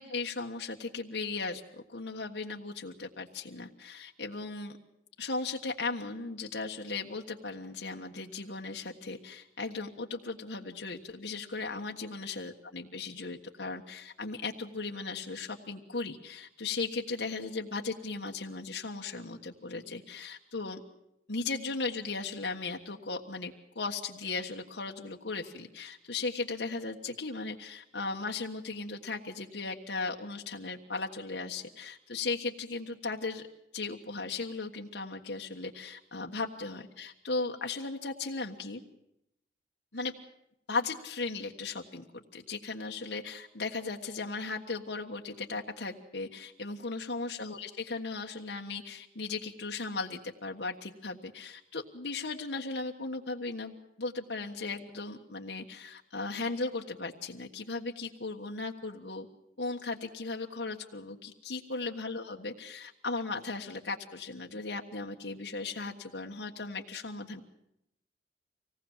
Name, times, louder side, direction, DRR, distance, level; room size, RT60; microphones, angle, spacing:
voice 1, 0.0-1.6 1.9-4.8 5.2-20.8 21.3-33.5 33.7-38.8 39.9-40.1 40.7-59.3 59.6-67.4, left 3 dB, 80° left, 1 dB, 1.5 m, -37 dB
25.5 x 18.5 x 7.4 m, 0.81 s
head